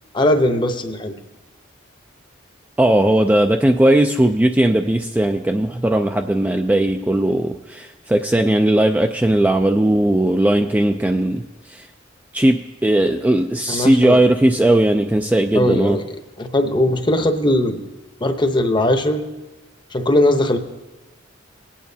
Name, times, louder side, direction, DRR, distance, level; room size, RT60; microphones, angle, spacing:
voice 1, 0.1-1.1 13.7-14.2 15.5-17.8 18.2-19.2 19.9-20.6, left 1 dB, 25° left, 6 dB, 0.8 m, -19 dB
voice 2, 2.8-11.4 11.7-11.9 12.3-16.0, right 1 dB, 10° right, 5 dB, 0.3 m, -17 dB
18.5 x 8.7 x 2.7 m, 1.2 s
head